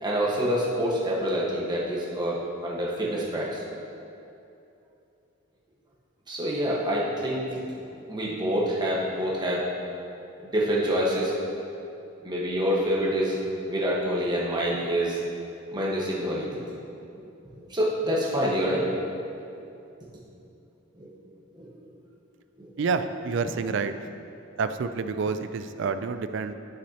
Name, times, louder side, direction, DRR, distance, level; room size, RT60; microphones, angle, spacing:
voice 1, 0.0-3.6 6.3-7.6 8.1-9.7 10.4-11.3 12.2-13.4 13.7-15.2 15.7-16.5 17.1-17.3 17.6-19.1 21.0-21.1 21.5-21.7 22.6-22.7, equal, 20° right, -5 dB, 1.2 m, -27 dB
voice 2, 22.8-23.9 24.6-26.5, right 5 dB, 60° right, 10 dB, 0.4 m, -28 dB
11.5 x 6.2 x 2.8 m, 2.7 s
head